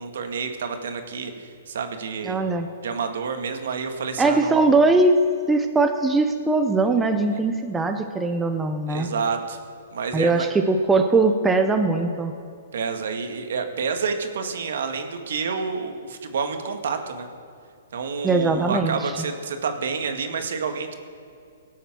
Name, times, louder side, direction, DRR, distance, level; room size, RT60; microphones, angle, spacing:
voice 1, 0.0-2.4 2.8-4.6 8.9-9.6 9.9-10.5 12.7-17.3 17.9-20.9, right 5 dB, 70° right, 6 dB, 1.6 m, -29 dB
voice 2, 2.3-2.7 4.2-5.2 5.5-9.1 10.1-12.3 18.2-19.0, right 3 dB, 10° right, 5 dB, 0.6 m, -20 dB
17.5 x 8.4 x 6.1 m, 2.4 s
hypercardioid pair, 160°, 0 cm